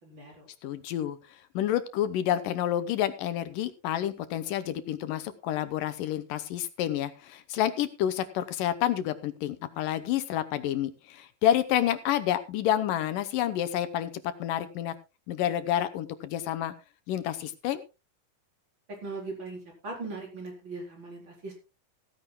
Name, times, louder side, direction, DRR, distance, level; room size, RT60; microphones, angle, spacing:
voice 1, 0.0-0.5 18.9-21.5, right 3 dB, 35° right, 0 dB, 4.8 m, -39 dB
voice 2, 0.6-14.9 15.3-16.7 17.1-17.8, left 11 dB, 75° left, 11 dB, 2.5 m, -29 dB
16.0 x 15.0 x 2.3 m, 0.28 s
omnidirectional pair, 3.9 m